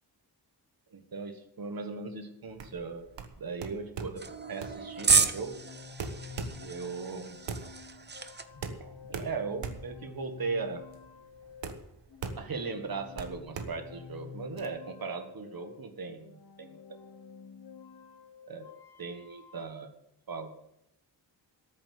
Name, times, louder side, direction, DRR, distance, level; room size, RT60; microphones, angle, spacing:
voice 1, 0.9-3.1 3.4-5.6 6.6-7.4 8.8-10.8 12.4-16.7 18.5-18.7 19.0-19.9 20.3-20.6, right 4 dB, 55° right, 6 dB, 1.7 m, -38 dB
sound 1, 2.5-14.7, right 5 dB, 80° right, 1.4 m, -41 dB
sound 2, 4.2-8.4, right 4 dB, 25° right, 0.8 m, -31 dB
sound 3, 5.0-19.6, left 7 dB, 60° left, 1.4 m, -49 dB
13.5 x 7.4 x 8.5 m, 0.79 s
wide cardioid pair, 170°, 43 cm